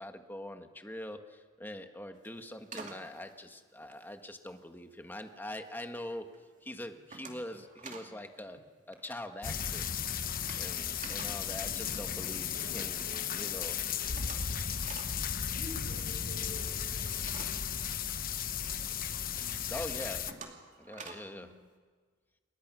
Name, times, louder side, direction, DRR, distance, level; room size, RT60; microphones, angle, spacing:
voice 1, 0.0-6.3 6.6-8.6 8.9-9.9 10.6-13.1 13.3-13.7 19.4-20.2 20.8-21.5, left 1 dB, 10° left, 6 dB, 1.5 m, -43 dB
sound 1, 2.1-4.7 5.1-5.7 6.0-6.4 6.7-8.2 8.4-8.6 8.8-12.6 13.0-13.1 13.4-13.5 13.7-18.7 19.1-19.2 19.7-21.4, right 4 dB, 40° right, 2.6 m, -50 dB
Human voice, 7.5-7.7 8.5-8.7 9.5-9.7 10.5-10.6 11.4-11.6 12.5-12.8 13.5-13.7 14.5-14.7 15.5-15.7 16.5-16.6, left 2 dB, 75° left, 4.7 m, -62 dB
sound 2, 9.4-20.3, left 8 dB, 45° left, 1.0 m, -35 dB
voice 2, 12.5-14.7 15.4-17.9 18.4-19.0 21.3-21.6, left 1 dB, 75° right, -5 dB, 6.5 m, -52 dB
28.5 x 22.0 x 6.2 m, 1.5 s
head